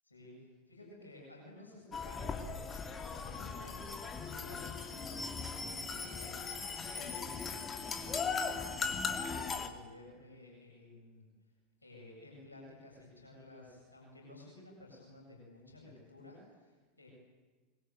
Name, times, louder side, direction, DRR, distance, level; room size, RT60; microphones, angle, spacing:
voice 1, 0.0-11.3 11.8-17.1, left 2 dB, 85° left, -1 dB, 8.0 m, -54 dB
sound 1, 1.9-9.7, left 5 dB, 25° left, 2.6 m, -38 dB
25.5 x 23.0 x 9.5 m, 1.3 s
figure-of-eight pair, 85°, 0 cm